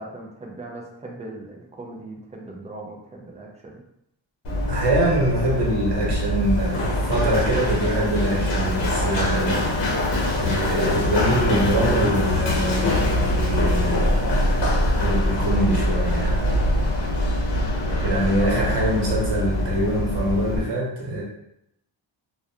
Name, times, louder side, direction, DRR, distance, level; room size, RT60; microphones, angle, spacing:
voice 1, 0.0-3.8 18.4-18.7, right 2 dB, 15° right, -1 dB, 0.3 m, -38 dB
Run, 4.4-20.6, left 1 dB, 65° left, 0.8 m, -23 dB
voice 2, 4.6-9.8 10.3-13.0 13.3-14.3 15.0-16.4 18.0-21.2, right 1 dB, 60° right, -3 dB, 0.9 m, -24 dB
2.7 x 2.2 x 2.3 m, 0.77 s
wide cardioid pair, 140°, 46 cm